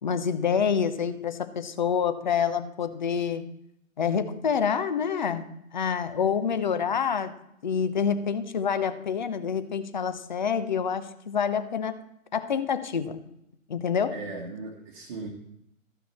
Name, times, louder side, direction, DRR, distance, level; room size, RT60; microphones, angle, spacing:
voice 1, 0.0-3.5 4.0-7.3 7.6-12.0 12.3-13.2 13.7-14.2, left 7 dB, 35° left, 12 dB, 0.9 m, -27 dB
voice 2, 14.1-15.3, right 3 dB, 20° right, -2 dB, 1.4 m, -37 dB
14.0 x 9.3 x 4.3 m, 0.79 s
figure-of-eight pair, 150°, 42 cm